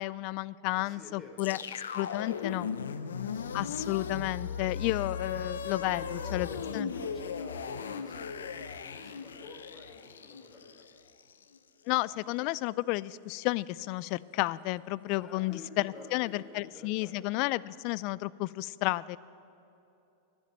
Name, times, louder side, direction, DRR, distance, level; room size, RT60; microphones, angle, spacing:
voice 1, 0.0-1.6 1.9-2.7 3.5-6.5 6.7-6.9 11.9-19.2, left 19 dB, 55° left, 21 dB, 0.3 m, -32 dB
voice 2, 0.7-2.5 2.8-3.6 5.6-10.7 15.1-17.3, left 3 dB, 25° left, 0 dB, 3.9 m, -49 dB
sound 1, 1.4-11.6, left 6 dB, 85° left, 0.7 m, -37 dB
11.5 x 10.5 x 9.2 m, 2.9 s
hypercardioid pair, 105°, 0 cm